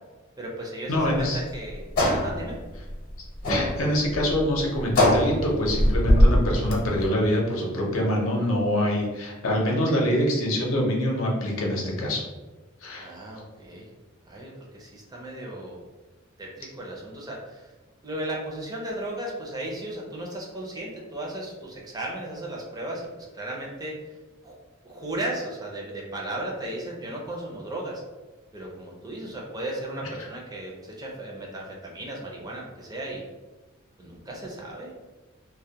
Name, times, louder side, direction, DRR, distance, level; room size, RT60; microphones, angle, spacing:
voice 1, 0.4-1.8 2.1-2.6 13.0-13.9 14.3-15.8 16.4-17.7 18.0-24.0 24.4-24.6 24.8-28.0 28.5-33.2 34.0-34.9, right 1 dB, 20° right, -2 dB, 0.4 m, -35 dB
voice 2, 0.9-1.4 3.5-12.2 12.8-13.1, equal, 90° left, -2 dB, 0.6 m, -25 dB
sound 1, 0.9-7.1, left 1 dB, 50° left, 0.7 m, -22 dB
2.2 x 2.1 x 2.7 m, 1.2 s
head